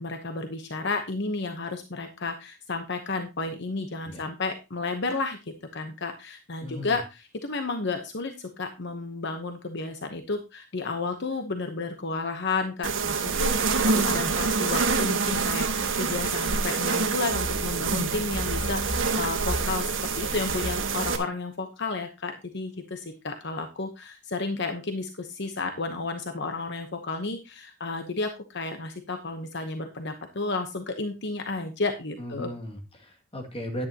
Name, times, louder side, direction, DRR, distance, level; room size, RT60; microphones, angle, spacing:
voice 1, 0.0-32.5, left 3 dB, 60° left, 6 dB, 1.0 m, -32 dB
voice 2, 6.6-7.0 32.2-33.9, equal, 30° left, 2 dB, 2.3 m, -36 dB
sound 1, 12.8-21.2, right 4 dB, 70° right, 1.6 m, -26 dB
11.0 x 9.9 x 2.9 m, 0.26 s
head